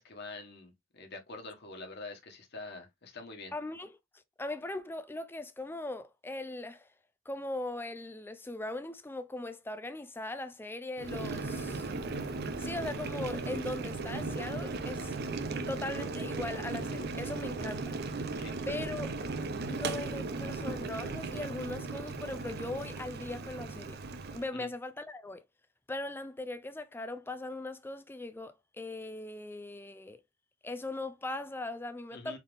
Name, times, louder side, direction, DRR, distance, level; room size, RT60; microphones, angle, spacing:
voice 1, 0.0-3.5 18.4-18.5 24.5-24.7 32.1-32.4, left 3 dB, 55° left, 1.2 m, -45 dB
voice 2, 3.5-4.0 4.4-6.9 7.3-11.9 12.6-15.1 15.7-18.0 18.7-19.2 19.7-24.0 24.3-25.4 25.9-30.2 30.6-32.4, left 2 dB, 10° left, 0.4 m, -39 dB
Boiling, 11.0-24.5, right 3 dB, 50° right, 0.6 m, -37 dB
4.1 x 3.5 x 2.5 m
head